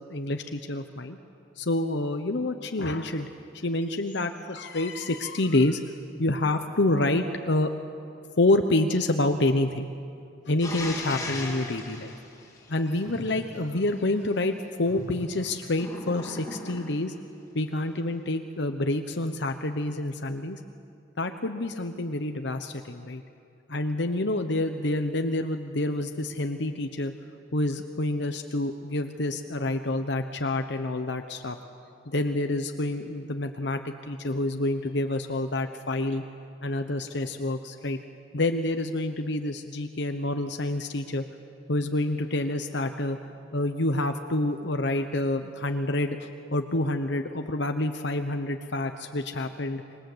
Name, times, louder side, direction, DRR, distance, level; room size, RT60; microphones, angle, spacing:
voice 1, 0.1-1.2 1.6-3.3 3.5-5.8 6.2-7.7 8.4-9.9 10.5-12.1 12.7-17.1 17.5-20.6 21.2-23.2 23.7-27.1 27.5-31.6 32.1-36.2 36.6-38.0 38.3-41.2 41.7-43.2 43.5-49.8, left 2 dB, 65° left, 6 dB, 1.0 m, -28 dB
sound 1, 10.6-13.3 15.7-17.1, left 2 dB, 20° left, 3.7 m, -37 dB
sound 2, 11.1-11.8 12.8-13.7 14.4-14.5 14.8-15.8, right 1 dB, 10° right, 5.9 m, -43 dB
26.5 x 22.0 x 8.0 m, 2.4 s
head